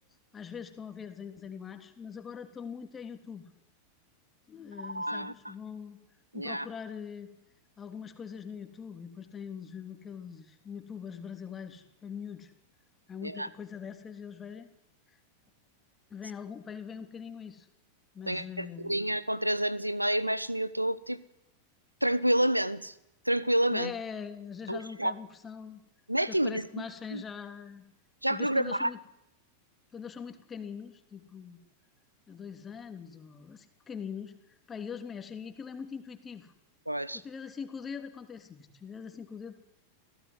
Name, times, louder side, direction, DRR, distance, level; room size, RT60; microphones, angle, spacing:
voice 1, 0.3-3.5 4.5-6.0 6.3-7.3 7.8-12.5 13.1-14.7 16.1-17.7 18.1-19.0 23.7-25.8 26.3-27.8 28.3-29.0 29.9-31.6 32.3-36.5 37.1-39.5, left 7 dB, 20° left, 6 dB, 3.4 m, -42 dB
voice 2, 4.8-5.5 6.3-6.7 13.2-13.5 18.3-21.2 22.0-22.9 23.2-23.9 24.7-25.1 26.1-26.6 27.1-27.2 28.2-28.9 36.9-37.2, right 1 dB, 85° right, 18 dB, 1.1 m, -29 dB
28.5 x 17.0 x 9.9 m, 0.89 s
figure-of-eight pair, 90°, 0 cm